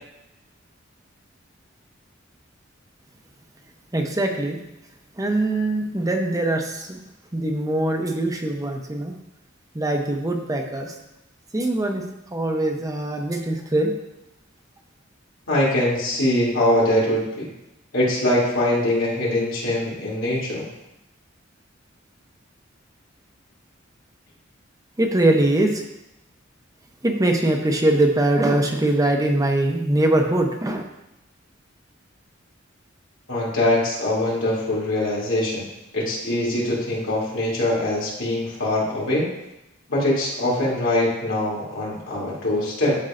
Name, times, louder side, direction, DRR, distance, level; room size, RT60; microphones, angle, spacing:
voice 1, 3.9-4.6 5.2-7.0 7.3-9.1 9.7-10.9 11.5-12.0 12.3-13.9 25.0-25.8 27.0-30.9, right 1 dB, 20° right, 3 dB, 0.7 m, -22 dB
voice 2, 15.5-17.5 17.9-20.6 33.3-35.6 35.9-39.3 39.9-42.9, left 1 dB, 90° left, -6 dB, 2.8 m, -22 dB
11.5 x 5.3 x 2.5 m, 0.90 s
head